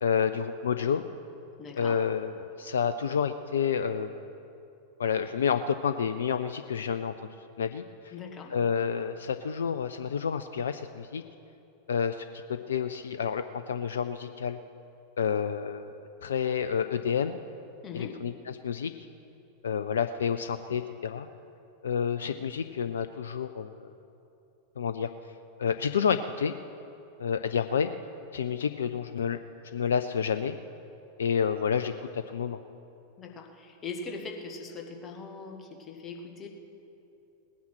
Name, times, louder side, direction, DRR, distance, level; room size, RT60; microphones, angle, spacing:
voice 1, 0.0-1.0 1.8-4.2 5.0-7.1 7.6-8.1 8.5-11.2 11.9-14.6 15.2-16.0 16.2-17.4 17.9-18.9 19.6-21.3 21.8-23.9 24.8-25.1 25.6-26.5 27.2-27.9 28.3-29.4 29.7-30.6 31.2-32.6, left 7 dB, 65° left, 10 dB, 0.4 m, -29 dB
voice 2, 1.6-2.0 8.1-8.6 17.8-18.2 33.2-36.5, left 4 dB, 25° left, 2 dB, 1.7 m, -41 dB
19.0 x 9.3 x 6.1 m, 2.8 s
figure-of-eight pair, 90°, 0 cm